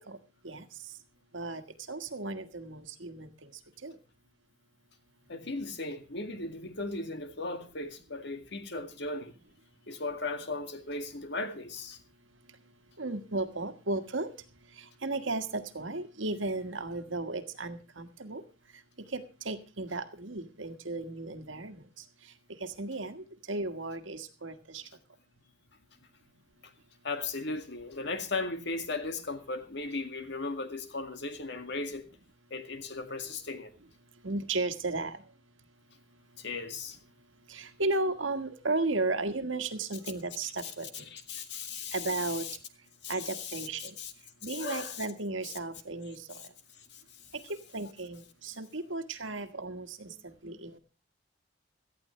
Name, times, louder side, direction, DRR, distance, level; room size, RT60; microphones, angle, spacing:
voice 1, 1.9-3.3 3.8-4.0 13.0-14.3 15.0-18.4 19.1-21.8 22.6-24.8 34.2-35.2 37.5-41.1 41.9-42.5 43.1-43.9 44.4-46.2 47.7-50.8, right 2 dB, 80° right, 1.7 m, -34 dB
voice 2, 5.3-9.3 9.9-12.0 27.0-32.0 32.5-33.7 36.4-37.0 40.6-42.6 43.0-44.1 44.4-45.1 46.9-47.0 50.4-50.6, left 3 dB, 60° left, 2.1 m, -37 dB
18.0 x 13.5 x 3.2 m
head